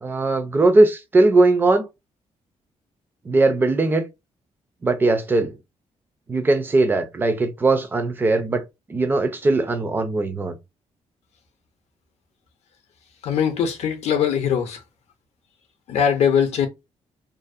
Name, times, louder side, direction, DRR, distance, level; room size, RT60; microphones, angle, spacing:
voice 1, 0.0-1.9 3.3-4.0 4.8-5.6 6.3-8.6 8.9-10.6, right 2 dB, 15° right, 0.4 m, -19 dB
voice 2, 13.2-14.8 15.9-16.7, left 8 dB, 65° left, 0.5 m, -21 dB
2.5 x 2.0 x 2.4 m
cardioid pair, 165°, 12 cm